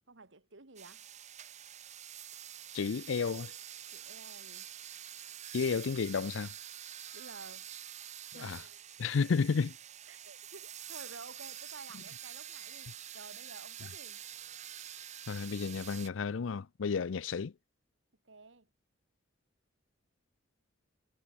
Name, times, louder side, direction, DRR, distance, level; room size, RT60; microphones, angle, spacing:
voice 1, 0.1-1.1 3.9-4.7 7.1-7.7 8.3-8.8 10.1-14.2 18.2-18.7, right 3 dB, 75° right, 2.1 m, -52 dB
sound 1, 0.8-16.1, right 10 dB, 40° right, 0.9 m, -47 dB
voice 2, 2.7-3.5 5.5-6.5 8.3-8.6 9.0-9.8 15.3-17.5, left 5 dB, 90° left, 0.5 m, -32 dB
head